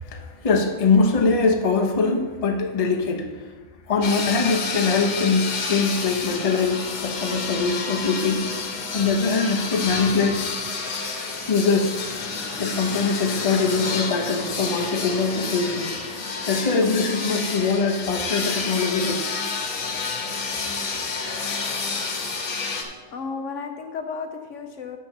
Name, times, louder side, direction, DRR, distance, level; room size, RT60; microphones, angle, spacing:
voice 1, 0.0-3.3 3.9-8.5 8.9-10.4 11.5-12.0 12.6-16.0 16.5-19.3, left 4 dB, 30° left, 3 dB, 0.8 m, -22 dB
sound 1, 4.0-22.8, left 4 dB, 80° left, 1.5 m, -29 dB
voice 2, 23.1-25.0, left 5 dB, 65° left, 5 dB, 0.9 m, -33 dB
7.3 x 6.0 x 5.8 m, 1.3 s
omnidirectional pair, 1.5 m